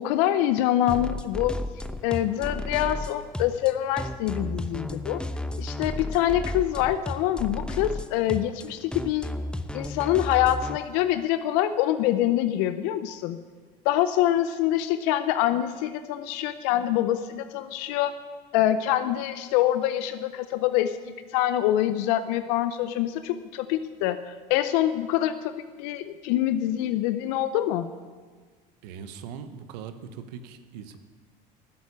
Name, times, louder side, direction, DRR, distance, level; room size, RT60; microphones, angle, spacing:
voice 1, 0.0-1.6 2.0-5.2 5.6-9.3 9.7-13.4 13.8-18.1 18.5-21.0 21.3-27.9, left 12 dB, 75° left, 12 dB, 0.6 m, -25 dB
sound 1, 0.9-10.8, left 1 dB, 5° left, 0.8 m, -33 dB
voice 2, 28.8-31.0, right 7 dB, 80° right, 10 dB, 1.0 m, -40 dB
12.0 x 8.2 x 9.8 m, 1.5 s
hypercardioid pair, 70°, 21 cm